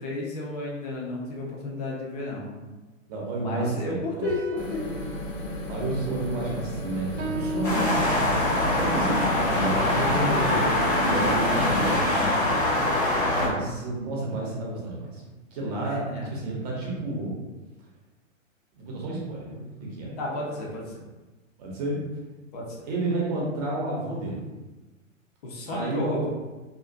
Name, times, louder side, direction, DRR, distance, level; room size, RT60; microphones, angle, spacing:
voice 1, 0.0-2.7 3.4-4.9 13.4-13.6 15.8-16.3 20.2-21.0 22.5-22.9 25.4-26.3, left 2 dB, 30° left, -2 dB, 0.5 m, -32 dB
voice 2, 3.1-4.2 5.7-8.3 8.7-12.6 13.3-15.2 15.5-17.3 18.7-20.2 21.6-22.0 22.8-24.4 25.7-26.3, right 2 dB, 30° right, -3 dB, 0.7 m, -31 dB
sound 1, 4.2-6.6 7.2-8.7 10.4-11.0, right 1 dB, 65° right, 0.7 m, -36 dB
sound 2, 4.6-12.0, left 1 dB, 70° left, 0.6 m, -34 dB
sound 3, 7.6-13.5, left 1 dB, 90° left, 1.2 m, -24 dB
2.4 x 2.4 x 2.4 m, 1.2 s
figure-of-eight pair, 115°, 40 cm